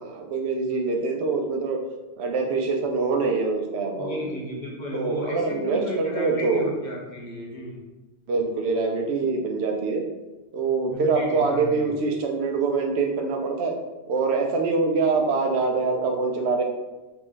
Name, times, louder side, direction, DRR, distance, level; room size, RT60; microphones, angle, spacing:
voice 1, 0.0-1.8 2.2-4.3 4.9-6.7 8.3-10.0 10.5-13.7 14.1-16.6, right 4 dB, 80° right, 3 dB, 0.9 m, -24 dB
voice 2, 3.9-7.8 10.9-11.9, equal, 50° left, -2 dB, 0.8 m, -34 dB
3.4 x 2.5 x 3.6 m, 1.1 s
omnidirectional pair, 1.1 m